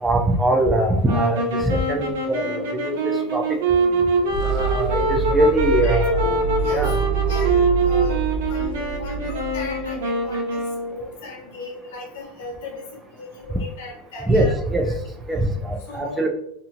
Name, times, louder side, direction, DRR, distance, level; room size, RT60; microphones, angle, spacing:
voice 1, 0.0-3.0 3.3-3.4 4.4-6.2 6.7-7.0 14.2-14.9 15.3-16.3, right 1 dB, 10° right, 2 dB, 0.5 m, -22 dB
sound 1, 1.0-11.0, right 2 dB, 80° right, 0.7 m, -24 dB
sound 2, 2.3-10.2, right 6 dB, 45° left, 0.4 m, -27 dB
sound 3, 2.4-11.6, left 1 dB, 25° left, 1.5 m, -39 dB
voice 2, 5.8-14.6 14.8-15.0 15.3-15.4 15.8-16.3, left 2 dB, 85° left, -1 dB, 1.0 m, -37 dB
2.8 x 2.6 x 2.5 m, 0.72 s
supercardioid pair, 145°, 0 cm